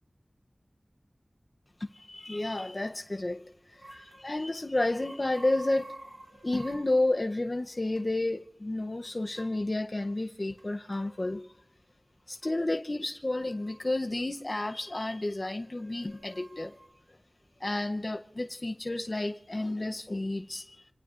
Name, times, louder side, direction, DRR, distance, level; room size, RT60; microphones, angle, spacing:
voice 1, 1.9-6.0 6.4-11.6 12.3-16.8 17.6-20.9, left 2 dB, 45° left, 0.6 m, -31 dB
sound 1, 3.7-4.3 4.9-7.1 7.6-7.7 8.0-8.1 9.0-9.6 10.6-11.1 12.4-12.6 13.4-13.8 14.6-15.2 15.6-16.9, right 2 dB, 50° right, 4.4 m, -50 dB
28.5 x 19.0 x 2.5 m
wide cardioid pair, 50°, 0 cm